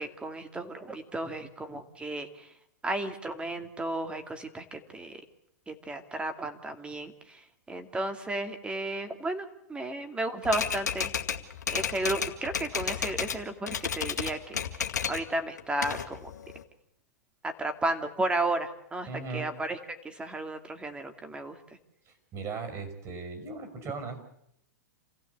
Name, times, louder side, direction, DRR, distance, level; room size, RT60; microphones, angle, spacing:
voice 1, 0.0-2.5 2.8-5.2 5.7-11.1 11.7-16.3 17.4-19.1 19.3-21.6, right 2 dB, 10° right, 7 dB, 2.4 m, -33 dB
Typewriter, 10.4-13.4 13.7-15.3 15.6-16.6, left 7 dB, 90° left, 2.2 m, -32 dB
voice 2, 19.1-19.5 22.1-24.2, right 4 dB, 35° right, 7 dB, 5.6 m, -38 dB
27.5 x 15.5 x 8.1 m, 0.78 s
hypercardioid pair, 120°, 9 cm